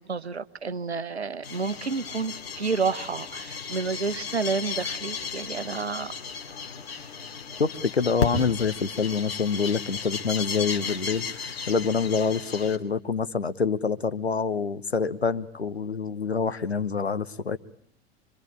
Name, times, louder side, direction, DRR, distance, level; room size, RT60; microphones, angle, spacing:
voice 1, 0.0-6.1 6.9-7.1, right 5 dB, 85° right, 13 dB, 1.1 m, -30 dB
sound 1, 1.4-12.8, left 5 dB, 70° left, 3.0 m, -34 dB
voice 2, 7.6-17.6, left 5 dB, 90° left, 11 dB, 1.0 m, -26 dB
26.0 x 25.0 x 8.8 m, 0.69 s
figure-of-eight pair, 85°, 31 cm